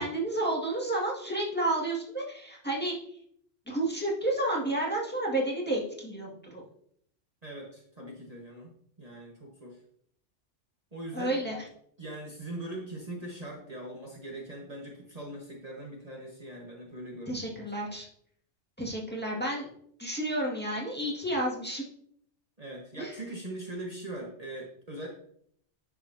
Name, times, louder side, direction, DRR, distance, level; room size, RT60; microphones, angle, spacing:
voice 1, 0.0-2.9 3.7-6.6 11.1-11.6 17.3-18.1 18.8-19.7 20.0-21.8 23.0-23.1, right 1 dB, 10° left, -4 dB, 1.9 m, -31 dB
voice 2, 7.4-8.7 9.0-9.8 10.9-11.6 12.0-17.7 22.6-25.1, right 1 dB, 35° right, -3 dB, 1.5 m, -41 dB
9.6 x 6.8 x 2.8 m, 0.66 s
omnidirectional pair, 1.2 m